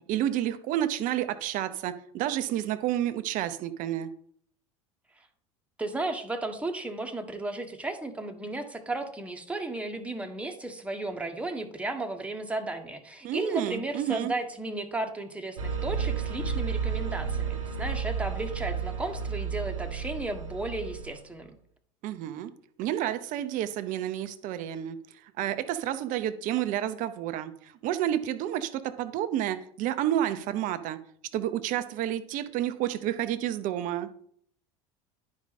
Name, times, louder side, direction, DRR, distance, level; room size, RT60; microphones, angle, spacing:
voice 1, 0.1-4.1 13.2-14.3 22.0-22.5 22.8-25.0 25.2-31.0 31.3-34.1, right 12 dB, 55° right, 11 dB, 0.8 m, -30 dB
voice 2, 5.8-21.5, right 2 dB, 10° right, 4 dB, 1.4 m, -34 dB
sound 1, 15.6-21.3, right 6 dB, 90° right, 1.1 m, -32 dB
10.5 x 4.9 x 4.1 m, 0.64 s
hypercardioid pair, 85°, 16 cm